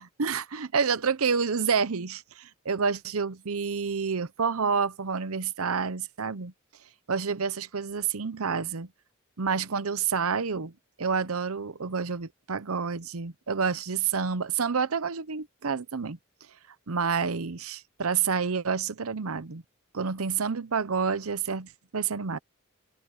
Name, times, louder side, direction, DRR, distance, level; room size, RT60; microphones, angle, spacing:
voice 1, 0.2-6.5 7.1-8.9 9.4-10.7 11.0-16.2 16.9-19.6 19.9-22.4, right 5 dB, 90° right, 0.8 m, -28 dB
head